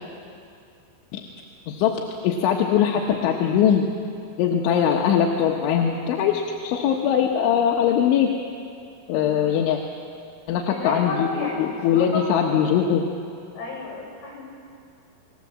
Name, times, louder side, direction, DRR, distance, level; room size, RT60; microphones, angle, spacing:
voice 1, 1.7-2.0 2.2-3.9 4.4-8.3 9.1-9.8 10.5-11.3 11.6-13.0, left 8 dB, 75° left, 0 dB, 3.5 m, -21 dB
voice 2, 9.0-9.5 10.7-12.5 13.5-14.5, left 3 dB, 55° left, -1 dB, 9.9 m, -32 dB
28.5 x 20.0 x 7.5 m, 2.4 s
omnidirectional pair, 5.9 m